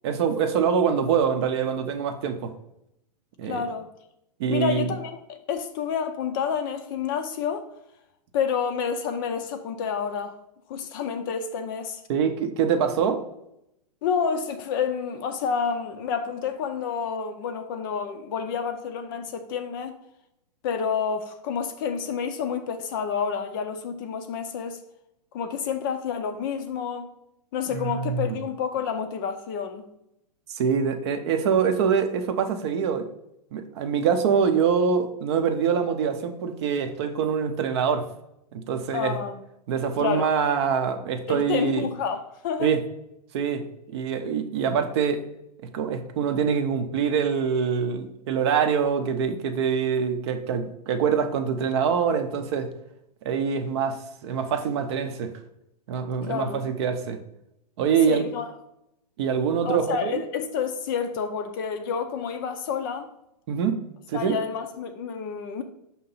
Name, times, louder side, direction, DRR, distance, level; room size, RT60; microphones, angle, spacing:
voice 1, 0.0-2.5 3.4-3.6 4.4-4.9 12.1-13.2 27.7-28.4 30.6-33.1 33.5-38.1 38.5-39.2 39.7-41.9 42.6-42.8 43.3-43.6 43.9-45.2 45.7-52.7 53.2-55.3 55.9-57.2 57.8-58.2 59.2-60.2 63.5-64.4, right 6 dB, 40° right, 0.6 m, -24 dB
voice 2, 3.4-3.9 4.5-7.7 8.3-10.4 10.7-12.0 14.0-20.0 20.6-24.8 25.3-27.1 27.5-29.8 38.9-39.4 40.0-40.3 41.3-42.7 56.2-56.6 58.1-58.5 59.6-63.1 64.1-65.6, left 6 dB, 30° left, 0.4 m, -29 dB
6.3 x 2.9 x 5.4 m
hypercardioid pair, 155°, 21 cm